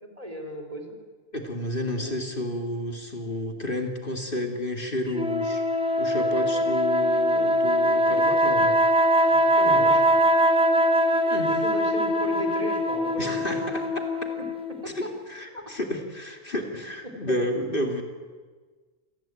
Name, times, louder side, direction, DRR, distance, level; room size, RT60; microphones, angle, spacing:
voice 1, 0.0-1.0 1.9-2.2 9.2-10.2 11.6-13.8 14.4-15.1 15.5-15.7 17.0-17.3, equal, 30° right, 3 dB, 3.9 m, -36 dB
voice 2, 1.3-5.6 6.0-8.9 9.2-9.9 11.3-11.6 13.2-14.0 14.8-18.0, left 1 dB, 45° left, 4 dB, 2.6 m, -31 dB
sound 1, 5.1-14.8, equal, 5° right, 1.4 m, -22 dB
27.5 x 19.0 x 9.1 m, 1.4 s
omnidirectional pair, 1.3 m